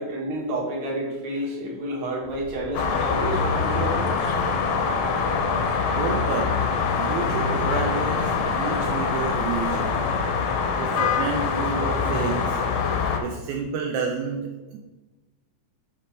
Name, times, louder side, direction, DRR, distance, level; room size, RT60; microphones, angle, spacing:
voice 1, 0.0-4.3, right 1 dB, 50° right, -4 dB, 2.1 m, -30 dB
sound 1, 2.2-9.8, left 1 dB, 30° right, 1.1 m, -42 dB
sound 2, 2.7-13.2, left 5 dB, 75° left, 1.9 m, -24 dB
voice 2, 6.0-6.7 6.9-10.1 10.8-12.6 13.2-14.8, right 6 dB, 80° right, 1 dB, 2.0 m, -30 dB
5.7 x 5.1 x 3.2 m, 1.1 s
omnidirectional pair, 3.4 m